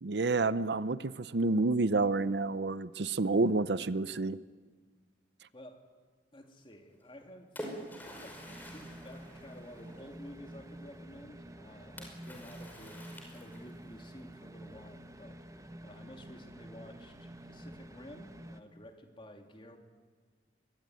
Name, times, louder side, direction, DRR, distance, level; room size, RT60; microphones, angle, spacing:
voice 1, 0.0-4.4, right 3 dB, 70° right, 16 dB, 0.7 m, -29 dB
voice 2, 6.3-7.5 8.2-13.0 13.3-19.8, equal, 30° left, 4 dB, 2.8 m, -52 dB
Splash splatter, 7.0-10.2 12.0-13.9, equal, 10° left, 5.4 m, -47 dB
sound 1, 7.7-18.6, right 1 dB, 20° right, 1.2 m, -49 dB
26.0 x 21.5 x 9.2 m, 1.5 s
head